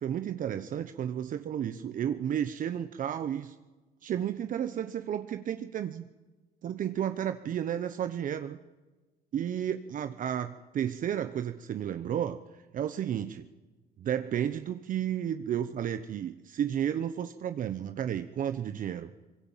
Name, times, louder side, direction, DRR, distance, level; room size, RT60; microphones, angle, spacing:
voice 1, 0.0-3.5 4.0-6.1 6.6-8.6 9.3-12.4 12.7-13.5 14.0-19.1, right 9 dB, 50° right, 10 dB, 1.0 m, -32 dB
24.0 x 22.0 x 7.4 m, 1.2 s
cardioid pair, 110°, 17 cm